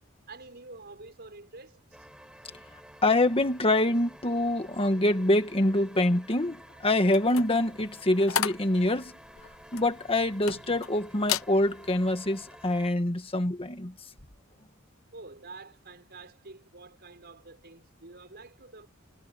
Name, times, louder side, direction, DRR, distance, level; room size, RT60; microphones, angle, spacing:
voice 1, 0.3-2.1 15.1-18.9, right 3 dB, 50° right, 5.3 m, -48 dB
sound 1, 1.9-12.9, right 1 dB, 5° right, 6.2 m, -51 dB
voice 2, 3.0-9.1 9.7-13.9, left 1 dB, 30° left, 1.7 m, -25 dB
sound 2, 7.1-10.9 11.2-11.5 12.0-12.3, left 9 dB, 85° left, 0.9 m, -33 dB
head